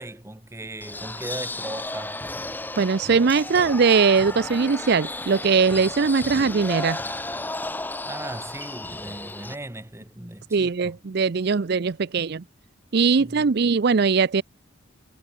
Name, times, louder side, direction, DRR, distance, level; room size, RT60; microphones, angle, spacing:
voice 1, 0.0-2.2 8.0-11.0 13.2-13.5, right 1 dB, 15° right, 0.9 m, -37 dB
sound 1, 0.8-9.5, left 2 dB, 10° left, 1.2 m, -33 dB
voice 2, 2.8-7.0 10.5-12.4 12.9-14.4, right 5 dB, 55° right, 0.5 m, -20 dB
head